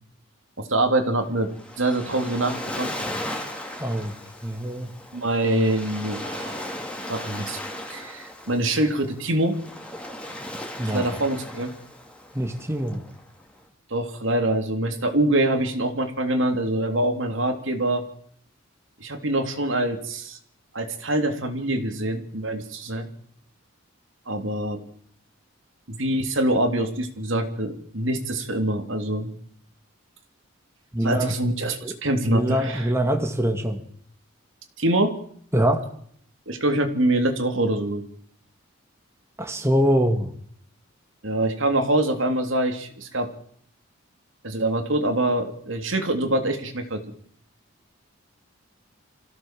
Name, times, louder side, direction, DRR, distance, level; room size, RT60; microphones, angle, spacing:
voice 1, 0.6-1.5 1.8-2.9 5.1-6.7 7.1-7.6 7.9-9.5 10.9-11.7 13.9-18.0 19.0-20.4 20.7-23.1 24.3-24.8 25.9-29.3 31.0-32.9 34.8-35.1 36.5-38.0 41.2-43.3 44.4-47.0, right 1 dB, 65° right, 6 dB, 3.1 m, -24 dB
Waves surf, 1.2-13.6, left 1 dB, 5° left, 3.2 m, -37 dB
voice 2, 3.8-4.1 4.4-4.9 10.8-11.2 12.3-13.0 30.9-31.3 31.8-31.9 32.2-33.8 35.5-35.9 39.4-40.3, equal, 15° right, 5 dB, 2.0 m, -24 dB
26.0 x 16.0 x 7.6 m, 0.64 s
head